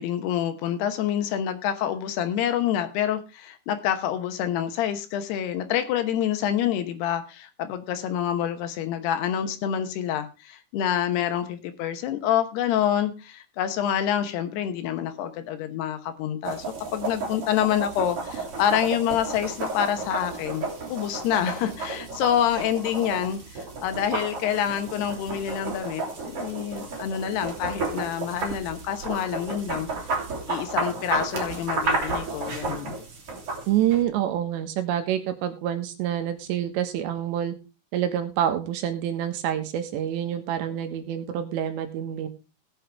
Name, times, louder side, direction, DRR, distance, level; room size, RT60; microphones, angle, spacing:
voice 1, 0.0-16.7 16.9-29.9 30.5-33.0, left 10 dB, 75° left, 8 dB, 3.0 m, -27 dB
sound 1, 16.4-34.0, right 3 dB, 40° right, 3.2 m, -32 dB
voice 2, 33.7-37.6 37.9-42.3, right 10 dB, 90° right, 7 dB, 3.6 m, -27 dB
18.0 x 7.5 x 3.4 m, 0.31 s
omnidirectional pair, 5.0 m